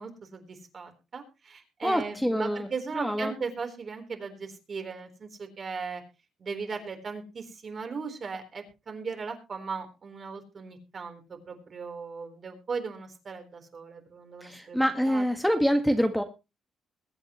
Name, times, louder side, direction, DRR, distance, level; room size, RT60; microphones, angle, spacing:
voice 1, 0.0-6.0 6.4-15.3, right 5 dB, 45° right, 5 dB, 3.9 m, -38 dB
voice 2, 1.8-2.7 2.9-3.3 14.4-16.2, equal, ahead, 5 dB, 1.6 m, -26 dB
22.0 x 9.0 x 3.1 m, 0.28 s
cardioid pair, 90°, 0 cm